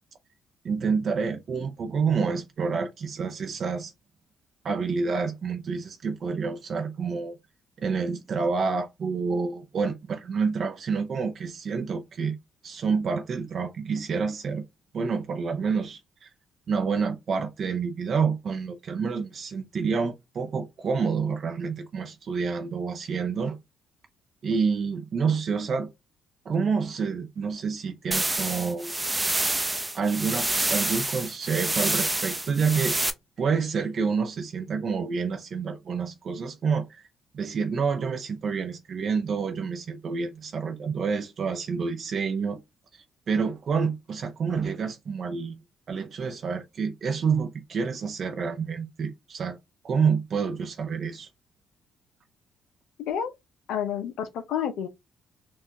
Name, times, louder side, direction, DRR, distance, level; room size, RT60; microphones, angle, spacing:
voice 1, 0.6-3.9 4.6-7.3 7.8-12.4 12.6-14.6 14.9-16.3 16.7-23.6 24.4-25.9 26.5-28.9 29.9-33.0 33.4-37.1 37.3-42.6 42.9-45.6 45.9-49.6 49.8-51.3, right 5 dB, 55° right, 0.5 m, -28 dB
sound 1, 28.1-33.1, right 2 dB, 15° right, 0.7 m, -27 dB
voice 2, 53.0-53.3 53.7-54.9, left 9 dB, 80° left, 0.6 m, -29 dB
4.3 x 2.4 x 2.8 m
supercardioid pair, 65°, 0 cm